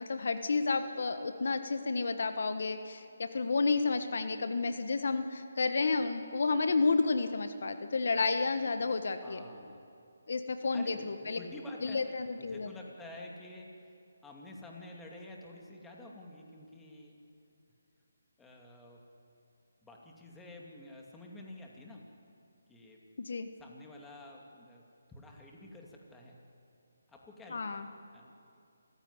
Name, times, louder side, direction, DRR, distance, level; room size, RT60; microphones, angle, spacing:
voice 1, 0.0-9.4 10.3-11.4 11.8-12.7 23.2-23.5 27.5-27.9, left 4 dB, 60° left, 9 dB, 1.4 m, -31 dB
voice 2, 9.1-9.8 10.7-12.0 12.4-13.9 14.2-17.2 18.4-19.0 19.8-22.0 22.7-23.0 23.6-24.8 25.1-26.4 27.1-28.6, left 1 dB, 5° left, -1 dB, 2.5 m, -49 dB
27.5 x 15.5 x 9.8 m, 2.6 s
figure-of-eight pair, 160°, 0 cm